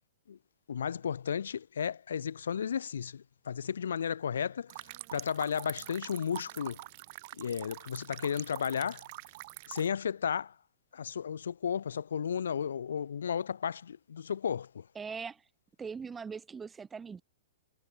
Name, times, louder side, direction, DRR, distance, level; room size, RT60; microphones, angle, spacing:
voice 1, 0.7-4.7 5.1-6.8 7.4-9.0 9.7-10.5 10.9-14.9, left 7 dB, 65° left, 1.2 m, -33 dB
sound 1, 4.7-9.9, right 23 dB, 40° right, 2.0 m, -45 dB
voice 2, 15.0-15.4 15.8-17.2, right 5 dB, 15° right, 0.7 m, -41 dB
figure-of-eight pair, 110°, 0 cm